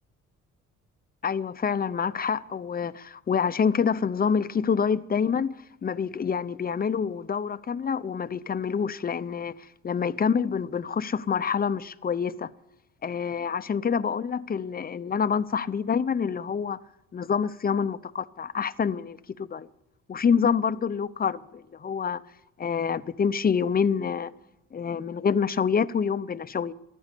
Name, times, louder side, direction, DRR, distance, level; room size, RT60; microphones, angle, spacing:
voice 1, 1.2-12.5 13.0-16.8 17.1-19.7 20.1-22.2 22.6-24.3 24.7-26.7, left 6 dB, 30° left, 0.7 m, -27 dB
15.0 x 12.0 x 8.3 m
cardioid pair, 90°, 30 cm